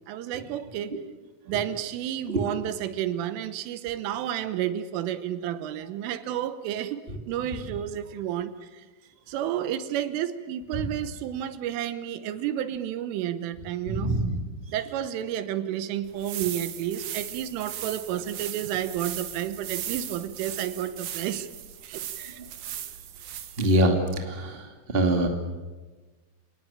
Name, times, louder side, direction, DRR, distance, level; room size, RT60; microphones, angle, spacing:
voice 1, 0.1-1.0 1.5-7.0 7.3-8.9 9.3-14.1 14.7-21.5 21.8-22.4, right 11 dB, 80° right, 12 dB, 3.5 m, -31 dB
voice 2, 13.9-14.4 22.4-22.5 23.6-25.3, right 1 dB, 40° right, 4 dB, 0.7 m, -25 dB
sound 1, 16.0-23.8, right 11 dB, 60° right, 2.6 m, -38 dB
29.0 x 19.0 x 8.9 m, 1.3 s
omnidirectional pair, 5.8 m